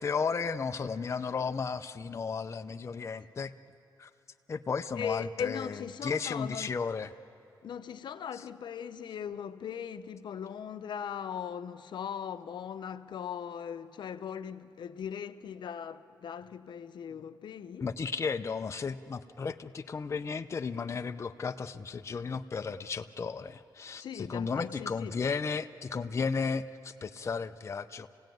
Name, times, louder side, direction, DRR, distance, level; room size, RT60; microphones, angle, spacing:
voice 1, 0.0-3.5 4.0-4.1 4.5-5.8 6.0-7.1 17.8-28.1, left 5 dB, 35° left, 0.6 m, -34 dB
voice 2, 5.0-6.7 7.6-17.9 24.0-25.1, left 8 dB, 75° left, 0.8 m, -39 dB
28.0 x 17.0 x 9.2 m
cardioid pair, 105°, 8 cm